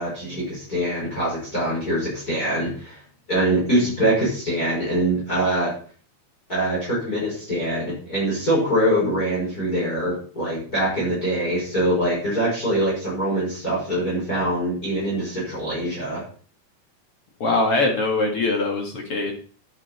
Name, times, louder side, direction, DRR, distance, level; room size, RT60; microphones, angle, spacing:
voice 1, 0.0-3.0 3.3-5.7 6.5-16.2, right 1 dB, 20° left, -5 dB, 6.0 m, -23 dB
voice 2, 17.4-19.3, left 2 dB, 45° left, 2 dB, 2.0 m, -22 dB
11.0 x 9.7 x 4.4 m, 0.42 s
omnidirectional pair, 5.2 m